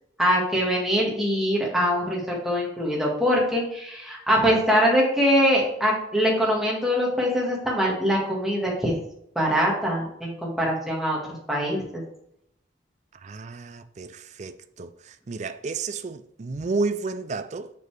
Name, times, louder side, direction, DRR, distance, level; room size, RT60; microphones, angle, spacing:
voice 1, 0.2-8.9 9.3-11.2 11.5-12.0, equal, ahead, 1.7 m, -23 dB
voice 2, 13.2-14.9 15.3-17.7, right 3 dB, 35° right, 0.4 m, -31 dB
6.8 x 6.7 x 3.4 m
head